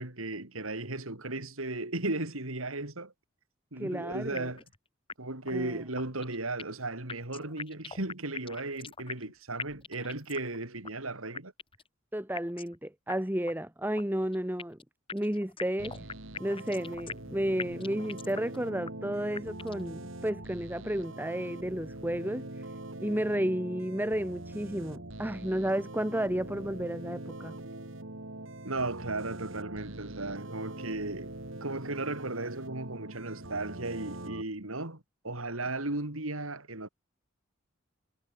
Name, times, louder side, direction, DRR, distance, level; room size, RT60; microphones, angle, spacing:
voice 1, 0.0-3.1 3.7-4.6 5.2-11.5 28.6-36.9, right 2 dB, 85° right, 4.0 m, -36 dB
voice 2, 3.8-4.5 5.5-5.8 12.1-14.8 15.1-16.0 16.4-22.7 23.0-27.5, equal, 10° right, 1.9 m, -32 dB
sound 1, 4.3-4.8 5.1-5.2 5.5-5.6 6.0-6.8 7.1-9.3 9.6-10.6 10.8-10.9 11.3-11.9 12.3-12.8 13.1-13.2 13.5-13.6 14.0-14.8 15.1-17.3 17.6-18.6 18.8-18.9 19.3-19.9, left 5 dB, 25° left, 2.0 m, -41 dB
sound 2, 15.8-34.4, right 1 dB, 65° right, 3.0 m, -43 dB
head